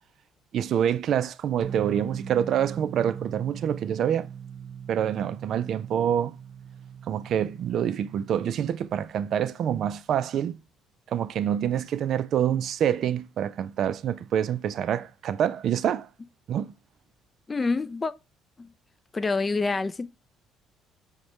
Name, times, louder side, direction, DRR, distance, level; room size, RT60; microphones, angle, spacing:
voice 1, 0.5-4.3 4.9-6.4 7.1-10.6 11.1-16.1 16.5-16.7, right 9 dB, 60° right, 0.3 m, -26 dB
sound 1, 1.6-8.5, right 7 dB, 30° right, 0.8 m, -39 dB
voice 2, 17.5-18.1 18.6-18.7 19.1-20.1, left 3 dB, 25° left, 0.3 m, -27 dB
6.3 x 2.2 x 2.9 m
cardioid pair, 85°, 0 cm